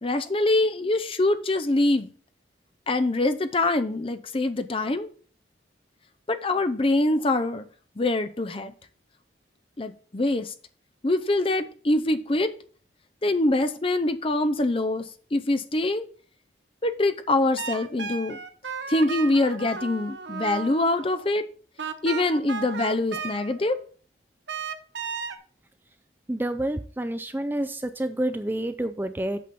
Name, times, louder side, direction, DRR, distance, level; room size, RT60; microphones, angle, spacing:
voice 1, 0.0-2.1 2.9-5.1 6.3-7.7 8.0-8.7 9.8-10.5 11.0-12.5 13.2-15.0 15.3-16.0 16.8-18.4 18.9-21.4 22.0-23.8, left 2 dB, 30° left, 9 dB, 0.6 m, -24 dB
sound 1, 17.6-21.2 21.8-23.8 24.5-25.4, right 5 dB, 75° right, 0.9 m, -34 dB
voice 2, 26.3-29.4, right 1 dB, 10° right, 10 dB, 0.4 m, -28 dB
8.4 x 4.2 x 6.9 m, 0.42 s
head